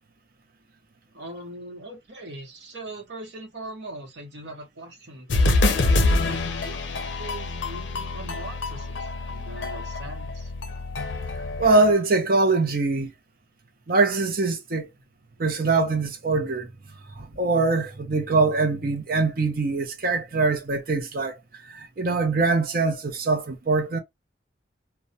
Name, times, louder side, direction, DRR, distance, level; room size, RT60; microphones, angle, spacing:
voice 1, 1.1-5.9 6.5-6.8 7.2-10.5, right 2 dB, 65° right, 0.9 m, -41 dB
sound 1, 5.3-11.9, left 2 dB, 70° left, 0.5 m, -26 dB
voice 2, 11.6-13.1 13.9-14.9 15.4-16.7 17.2-21.3 21.7-24.0, right 3 dB, 50° right, 0.6 m, -23 dB
2.2 x 2.1 x 2.5 m
head